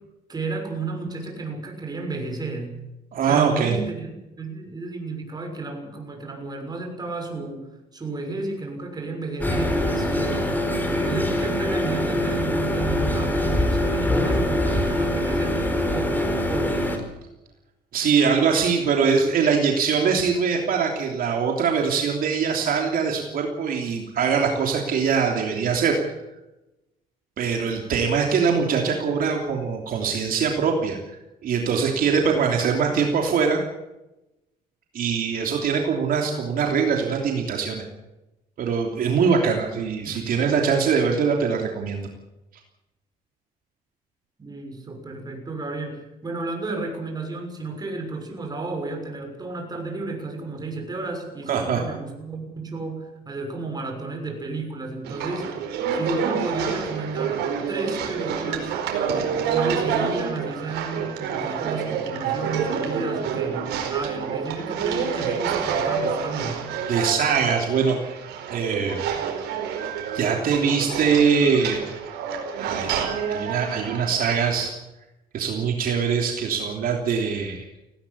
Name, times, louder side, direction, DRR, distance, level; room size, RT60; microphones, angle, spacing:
voice 1, 0.3-2.7 3.2-10.5 11.0-15.5 15.9-16.0 16.5-16.9 40.0-40.4 44.4-55.5 55.9-58.8 59.5-66.6, right 3 dB, 25° right, 3 dB, 6.5 m, -32 dB
voice 2, 3.1-3.8 17.9-26.0 27.4-31.0 31.4-33.6 34.9-37.8 38.6-42.1 51.5-51.8 66.9-68.0 68.5-69.0 70.1-71.8 72.6-74.7 75.3-77.7, right 6 dB, 60° right, 2 dB, 3.2 m, -22 dB
sound 1, 9.4-17.0, left 1 dB, 10° left, 4.5 m, -23 dB
sound 2, 55.0-74.7, right 7 dB, 80° right, 4.7 m, -28 dB
18.5 x 17.5 x 8.7 m, 0.97 s
cardioid pair, 110°, 17 cm